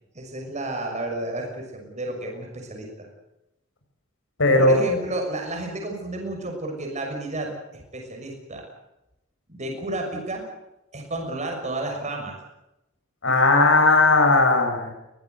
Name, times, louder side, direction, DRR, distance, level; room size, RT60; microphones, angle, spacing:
voice 1, 0.1-3.1 4.5-8.6 9.5-10.4 10.9-12.4, right 2 dB, 35° right, 2 dB, 6.3 m, -31 dB
voice 2, 4.4-4.7 13.2-14.9, left 3 dB, 65° left, 4 dB, 8.0 m, -17 dB
22.5 x 19.0 x 8.2 m, 0.91 s
head